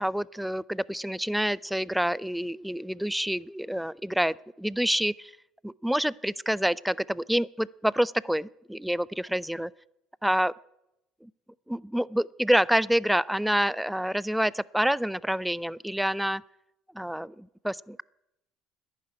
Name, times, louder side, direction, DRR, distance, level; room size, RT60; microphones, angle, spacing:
voice 1, 0.0-5.3 5.6-9.7 10.2-10.5 11.2-11.3 11.7-16.4 16.9-18.0, equal, 5° right, 22 dB, 0.4 m, -27 dB
11.0 x 10.0 x 9.7 m, 0.89 s
supercardioid pair, 80°, 0 cm